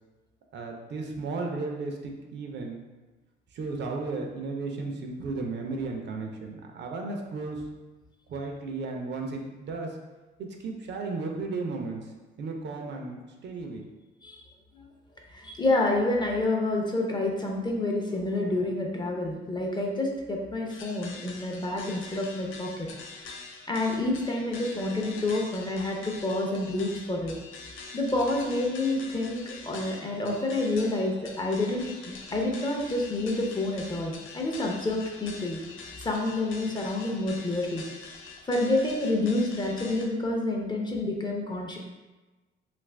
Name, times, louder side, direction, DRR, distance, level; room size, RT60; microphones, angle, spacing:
voice 1, 0.5-2.8 3.5-7.6 8.3-10.0 10.4-13.9, right 3 dB, 60° right, 2 dB, 0.5 m, -34 dB
voice 2, 15.3-22.9 23.7-27.3 27.9-35.6 36.0-37.8 38.5-41.8, left 2 dB, 20° left, 0 dB, 0.5 m, -28 dB
sound 1, 20.7-40.1, left 4 dB, 80° left, 0.5 m, -45 dB
2.8 x 2.5 x 3.2 m, 1.2 s
cardioid pair, 90°, 20 cm